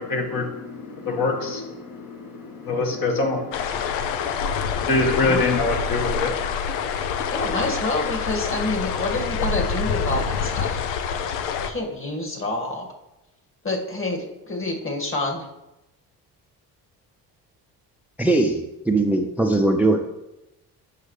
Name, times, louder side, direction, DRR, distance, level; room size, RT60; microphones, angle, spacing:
voice 1, 0.0-3.6 4.8-6.3, left 3 dB, 50° left, 1 dB, 1.8 m, -25 dB
sound 1, 3.5-11.7, left 6 dB, 85° left, 0.6 m, -26 dB
voice 2, 7.3-10.8 11.7-12.9 13.6-15.5, left 2 dB, 30° left, 1 dB, 2.0 m, -27 dB
voice 3, 18.2-20.0, right 2 dB, 5° right, 4 dB, 0.6 m, -20 dB
8.2 x 5.6 x 3.3 m, 0.94 s
supercardioid pair, 55°, 43 cm